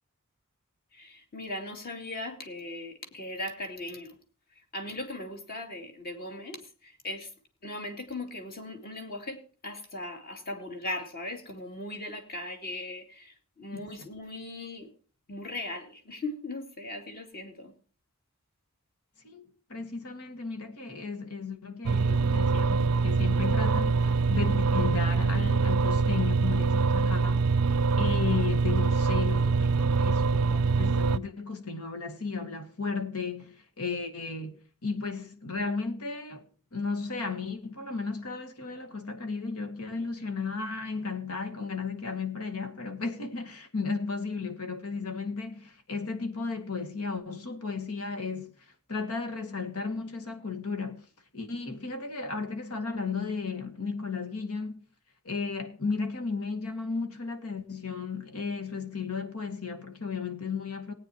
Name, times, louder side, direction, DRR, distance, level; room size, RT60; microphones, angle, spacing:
voice 1, 0.9-4.2 4.7-7.3 7.6-14.9 15.3-17.7, left 2 dB, 45° left, 2.6 m, -38 dB
voice 2, 13.7-14.1 19.2-19.4 19.7-27.5 28.0-34.6 34.8-36.4 36.7-51.1 51.3-54.8 55.2-60.9, left 4 dB, 80° left, 2.0 m, -34 dB
sound 1, 21.8-31.2, right 4 dB, 80° right, 0.5 m, -24 dB
19.0 x 9.3 x 2.9 m
head